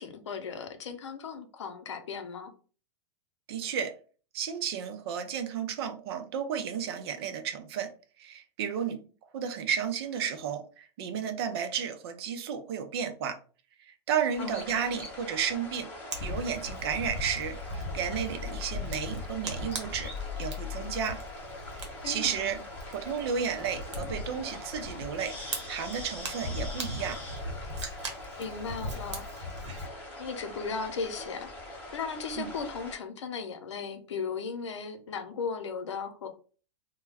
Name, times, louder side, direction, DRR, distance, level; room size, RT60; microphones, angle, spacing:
voice 1, 0.0-2.5 8.9-9.0 14.4-14.7 22.0-22.6 28.4-29.3 30.2-31.5 31.9-36.3, left 5 dB, 85° left, 0.6 m, -36 dB
voice 2, 3.5-3.9 4.3-7.9 8.2-9.0 9.3-13.4 14.1-15.9 16.2-17.6 17.9-20.1 20.4-21.2 22.0-22.6 22.9-27.2 32.4-32.5, right 7 dB, 60° right, 0.6 m, -32 dB
sound 1, 14.3-33.0, left 3 dB, 10° left, 1.1 m, -42 dB
Fire, 16.1-29.9, equal, 90° right, 0.9 m, -39 dB
2.2 x 2.2 x 3.3 m
hypercardioid pair, 115°, 15 cm